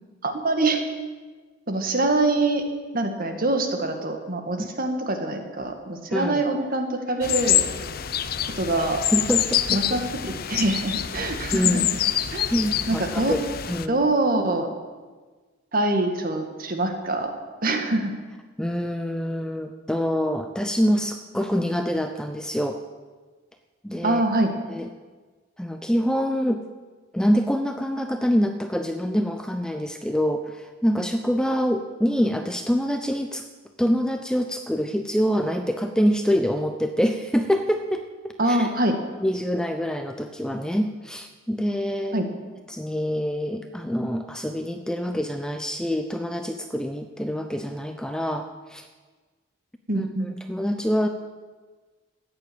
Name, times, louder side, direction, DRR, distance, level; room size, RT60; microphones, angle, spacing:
voice 1, 0.2-0.8 1.7-2.6 2.9-7.6 8.6-9.0 9.7-11.9 12.3-12.5 12.9-13.3 13.9-14.7 15.7-17.3 17.6-18.1 24.0-24.5 38.4-39.0 42.1-42.3 49.9-50.3, right 2 dB, 45° right, 5 dB, 1.8 m, -24 dB
sound 1, 7.2-13.9, left 11 dB, 45° left, 0.6 m, -26 dB
voice 2, 9.1-9.8 11.5-11.9 12.5-13.4 13.7-14.0 18.6-22.8 23.8-24.2 24.7-24.9 25.6-26.6 27.1-33.4 33.8-38.7 39.2-42.2 42.7-48.9 49.9-51.1, equal, 5° left, 6 dB, 0.6 m, -25 dB
14.0 x 9.4 x 8.6 m, 1.4 s
head